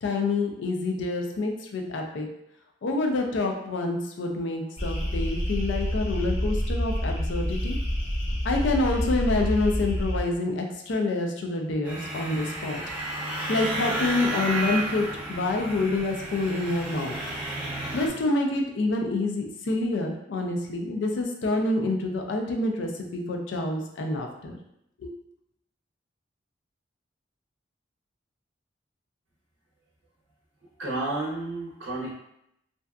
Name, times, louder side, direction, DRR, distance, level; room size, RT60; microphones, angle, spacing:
voice 1, 0.0-2.3 2.8-7.8 8.4-12.8 13.5-17.2 17.9-24.6 25.0-25.1, left 2 dB, 75° left, 3 dB, 0.4 m, -27 dB
sound 1, 4.8-10.2, equal, 35° left, 0.6 m, -28 dB
sound 2, 11.8-18.1, right 1 dB, 5° right, 0.5 m, -32 dB
voice 2, 30.8-32.1, right 2 dB, 85° right, -4 dB, 0.5 m, -31 dB
2.6 x 2.3 x 2.2 m, 0.77 s
head